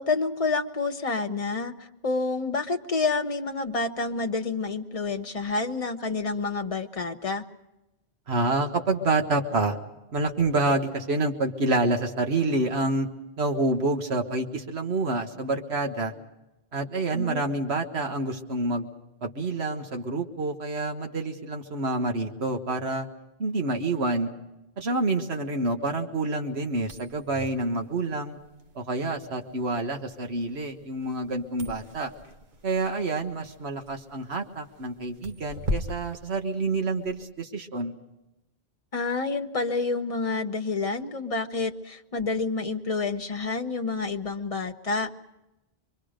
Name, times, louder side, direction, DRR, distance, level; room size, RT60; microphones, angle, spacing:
voice 1, 0.0-1.7 2.0-7.4 17.1-17.4 38.9-45.1, left 3 dB, 35° left, 6 dB, 1.2 m, -28 dB
voice 2, 8.3-9.8 10.1-13.1 13.4-16.1 16.7-18.9 19.2-23.1 23.4-24.3 24.8-28.4 28.8-32.1 32.6-37.9, right 2 dB, 80° right, 4 dB, 1.8 m, -28 dB
sound 1, 26.7-37.2, equal, 50° right, 1.1 m, -40 dB
26.5 x 23.0 x 5.1 m, 0.97 s
omnidirectional pair, 1.1 m